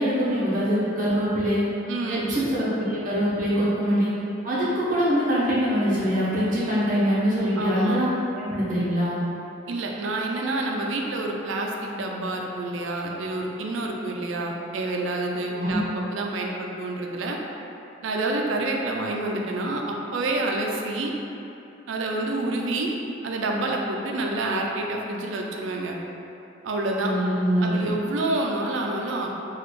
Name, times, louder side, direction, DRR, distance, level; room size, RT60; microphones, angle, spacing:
voice 1, 0.0-1.7 2.1-4.1 4.4-8.1 8.3-9.2 15.5-15.8 27.0-27.8, equal, 45° right, -9 dB, 0.9 m, -23 dB
voice 2, 1.9-2.3 7.6-8.0 9.7-17.4 18.0-21.1 21.9-22.9 23.2-26.0 26.6-27.1 27.6-29.3, right 2 dB, 75° right, 0 dB, 0.4 m, -28 dB
3.9 x 2.3 x 3.1 m, 2.9 s
head